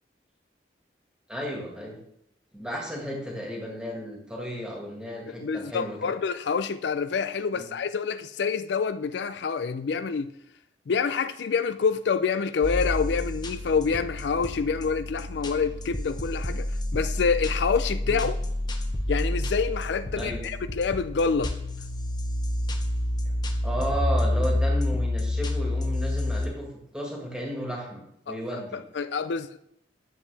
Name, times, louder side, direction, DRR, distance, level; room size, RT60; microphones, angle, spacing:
voice 1, 1.3-2.0 2.5-6.1 7.5-7.7 18.0-18.2 20.1-20.4 23.2-23.3 23.6-26.7 26.9-28.8, equal, 5° right, 1.7 m, -34 dB
voice 2, 5.3-10.3 10.9-18.4 19.1-21.6 28.3-29.6, left 5 dB, 75° left, 0.4 m, -27 dB
sound 1, 12.6-26.5, left 1 dB, 25° left, 0.7 m, -29 dB
9.8 x 7.1 x 3.4 m
head